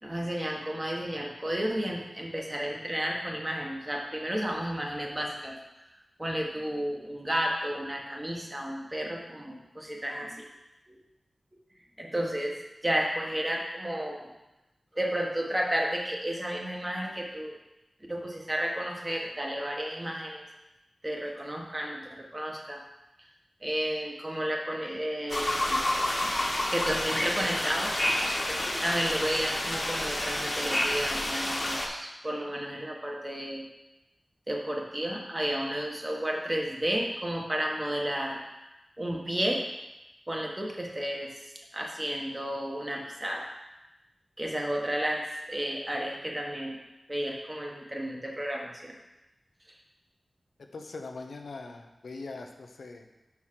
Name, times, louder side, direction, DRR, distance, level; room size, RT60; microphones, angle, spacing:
voice 1, 0.0-5.6 6.2-10.4 10.9-11.0 12.0-14.3 14.9-17.5 18.1-20.4 21.0-22.8 23.6-25.8 26.7-27.9 28.8-33.7 34.5-38.4 39.0-39.6 40.3-43.5 44.4-46.8 47.1-48.9, right 1 dB, 25° right, -1 dB, 1.4 m, -32 dB
sound 1, 25.3-31.9, left 1 dB, 40° left, 1.3 m, -29 dB
voice 2, 50.6-53.1, left 3 dB, 85° left, 4 dB, 0.6 m, -42 dB
6.1 x 4.6 x 5.7 m, 0.98 s
cardioid pair, 50°, 0 cm